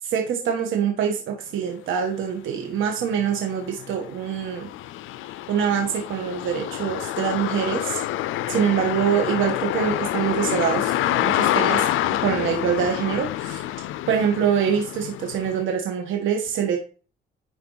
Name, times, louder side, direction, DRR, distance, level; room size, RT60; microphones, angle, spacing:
voice 1, 0.0-4.7 5.5-8.0 8.5-11.9 12.2-13.6 14.1-16.8, right 8 dB, 80° right, 2 dB, 1.5 m, -24 dB
sound 1, 2.2-2.3 2.8-15.6, left 14 dB, 85° left, 0.5 m, -27 dB
10.5 x 4.5 x 4.0 m, 0.38 s
cardioid pair, 90°, 20 cm